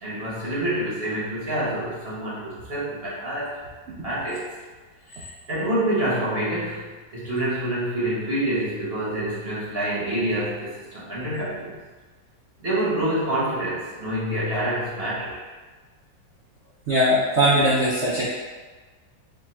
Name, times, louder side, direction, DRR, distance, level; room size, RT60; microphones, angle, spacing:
voice 1, 0.0-3.5 4.0-4.5 5.1-11.8 12.6-15.4, right 1 dB, 45° right, -8 dB, 0.8 m, -27 dB
voice 2, 16.9-18.3, equal, 85° right, -8 dB, 0.6 m, -20 dB
3.6 x 2.3 x 4.2 m, 1.4 s
omnidirectional pair, 2.0 m